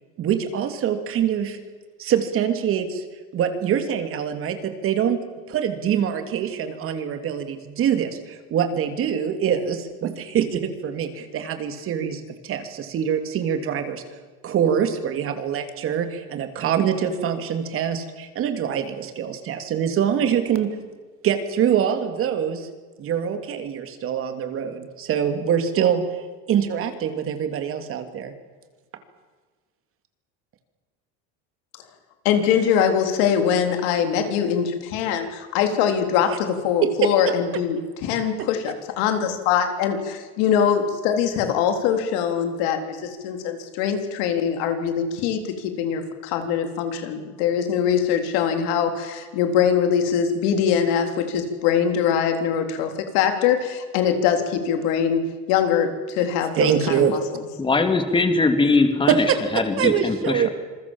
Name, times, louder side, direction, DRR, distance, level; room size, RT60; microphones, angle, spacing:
voice 1, 0.2-1.6 2.0-3.0 3.3-14.0 14.4-20.8 21.2-22.7 23.0-28.3 36.8-37.3 38.4-38.5 56.2-56.3 56.6-57.2 59.1-59.4 59.8-60.5, right 8 dB, 45° right, 7 dB, 2.9 m, -24 dB
voice 2, 32.2-57.2, left 8 dB, 80° left, 6 dB, 3.9 m, -22 dB
voice 3, 57.6-59.3 59.5-60.4, left 3 dB, 15° left, 7 dB, 2.7 m, -20 dB
27.0 x 22.0 x 7.3 m, 1.4 s
cardioid pair, 145°, 32 cm